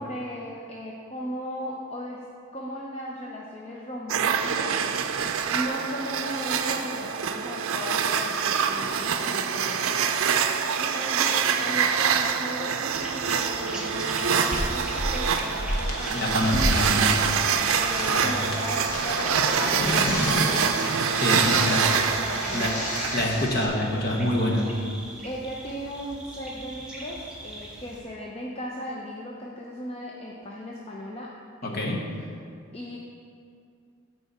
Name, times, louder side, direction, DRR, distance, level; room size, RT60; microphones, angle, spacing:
voice 1, 0.0-2.2 2.5-5.1 5.5-16.5 17.8-20.9 21.1-22.9 24.6-24.8 25.2-31.3 31.6-32.0 32.7-33.0, equal, 30° left, -3 dB, 0.6 m, -37 dB
sound 1, 4.1-23.5, right 7 dB, 75° right, 0.5 m, -26 dB
sound 2, 12.9-28.0, right 1 dB, 5° right, 1.0 m, -40 dB
sound 3, 14.3-23.7, left 1 dB, 85° left, 1.6 m, -31 dB
voice 2, 16.1-17.3 18.1-18.3 21.2-21.8 22.5-22.7 23.1-24.7 31.6-32.0, left 1 dB, 45° left, -1 dB, 1.2 m, -26 dB
13.5 x 4.8 x 4.2 m, 2.4 s
head